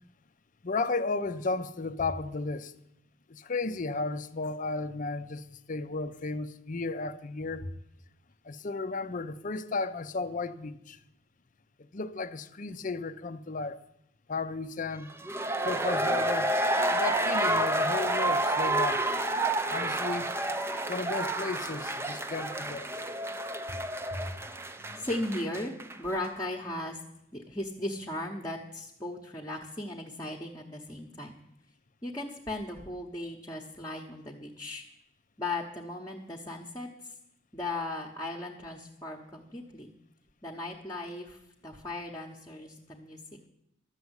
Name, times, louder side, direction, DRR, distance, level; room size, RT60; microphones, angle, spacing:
voice 1, 0.6-2.7 3.3-7.6 8.4-11.0 11.8-13.8 14.3-15.1 15.6-16.5 16.9-19.1 19.7-20.3 20.9-22.9, left 3 dB, 40° left, 0.6 m, -34 dB
sound 1, 15.1-26.0 26.2-26.3, right 1 dB, 15° right, 0.6 m, -29 dB
voice 2, 24.9-27.0 27.3-31.3 32.0-34.8 35.4-37.1 37.5-39.9 40.4-43.2, left 1 dB, 20° left, 1.0 m, -37 dB
12.5 x 7.0 x 8.0 m
head